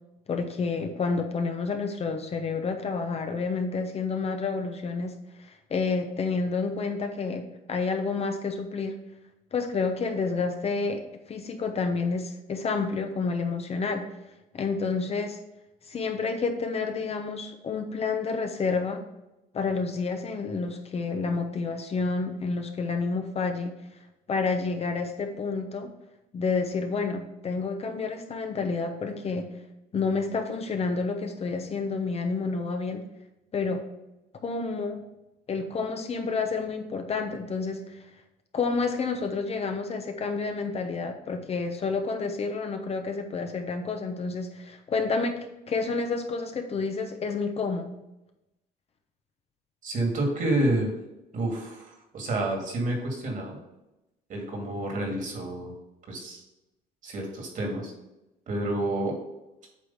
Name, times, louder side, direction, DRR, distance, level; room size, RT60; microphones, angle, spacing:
voice 1, 0.3-5.1 5.4-9.0 9.5-14.0 14.5-15.4 15.9-19.0 19.5-23.7 24.3-25.9 26.3-29.5 29.9-33.0 33.5-33.8 34.4-35.0 35.5-38.0 38.5-47.9, left 4 dB, 40° left, 5 dB, 0.8 m, -29 dB
voice 2, 49.8-50.9 51.3-53.6 54.3-55.7 56.1-56.4 57.0-57.9 58.5-59.2, right 1 dB, 50° right, 1 dB, 2.3 m, -29 dB
8.3 x 3.2 x 5.6 m, 0.94 s
cardioid pair, 110°, 17 cm